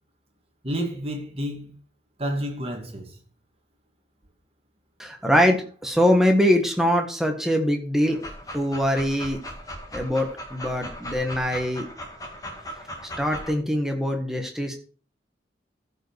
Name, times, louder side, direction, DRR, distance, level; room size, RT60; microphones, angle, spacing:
voice 1, 0.6-1.8 2.2-3.1, equal, 35° right, 2.1 m, -30 dB
voice 2, 5.0-8.2 8.5-9.4 9.9-11.9 13.2-14.7, equal, ahead, 1.6 m, -23 dB
Dog, 8.1-13.5, equal, 20° left, 2.1 m, -38 dB
14.0 x 5.5 x 4.8 m
head